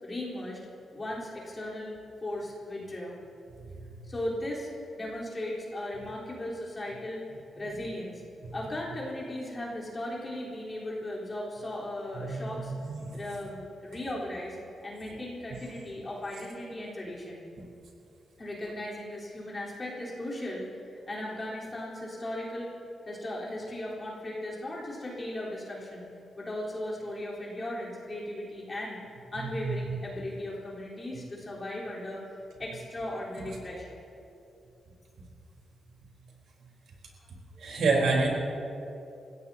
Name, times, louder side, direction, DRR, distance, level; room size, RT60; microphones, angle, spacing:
voice 1, 0.0-0.6 0.9-1.9 2.2-3.2 4.0-7.2 7.6-8.2 8.5-12.7 13.1-17.4 18.4-20.6 21.1-22.7 23.1-26.1 26.4-29.0 29.3-32.2 32.6-34.0, left 1 dB, 25° left, -5 dB, 3.9 m, -37 dB
voice 2, 12.2-13.2 15.2-15.3 17.6-17.7 29.6-30.0 37.6-38.3, right 3 dB, 80° right, -1 dB, 3.9 m, -29 dB
28.5 x 16.5 x 2.8 m, 2.7 s
wide cardioid pair, 160°, 0 cm